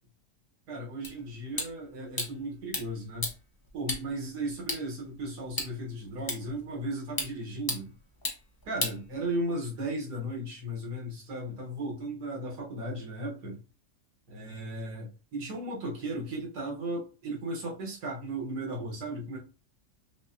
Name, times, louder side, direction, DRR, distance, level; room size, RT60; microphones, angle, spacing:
voice 1, 0.7-3.3 3.7-7.9 8.6-13.6 14.3-19.4, right 1 dB, 85° right, 1.8 m, -36 dB
sound 1, 1.0-9.6, left 2 dB, 30° left, 0.4 m, -38 dB
5.6 x 2.1 x 2.6 m
omnidirectional pair, 1.7 m